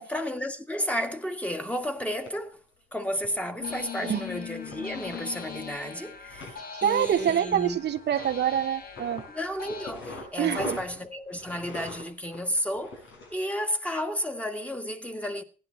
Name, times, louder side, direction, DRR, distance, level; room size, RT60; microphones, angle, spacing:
voice 1, 0.1-2.6 2.9-7.8 9.3-13.0 13.3-15.4, equal, 5° left, 1.9 m, -32 dB
sound 1, 2.0-2.3 3.1-3.8 4.2-5.7 6.1-6.6 6.9-8.6 9.0-13.4, left 2 dB, 85° left, 6.2 m, -42 dB
sound 2, 3.6-9.9, left 7 dB, 50° left, 2.0 m, -41 dB
voice 2, 6.8-9.3 10.4-10.8, right 9 dB, 60° right, 0.9 m, -26 dB
16.5 x 10.5 x 4.3 m
cardioid pair, 90°, 20 cm